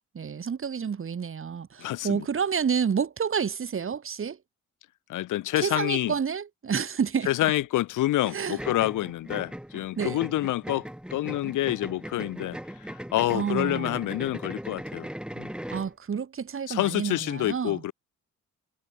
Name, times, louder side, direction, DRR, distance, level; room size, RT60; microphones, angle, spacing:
voice 1, 0.1-4.4 5.6-7.3 8.3-8.6 10.0-10.2 13.3-14.0 15.7-17.8, right 6 dB, 45° right, 4.1 m, -29 dB
voice 2, 1.8-2.3 5.1-6.1 7.3-15.1 15.4-15.5 16.7-17.9, left 15 dB, 85° left, 3.6 m, -28 dB
sound 1, 8.6-15.9, equal, 5° right, 6.4 m, -39 dB
cardioid pair, 90°, 30 cm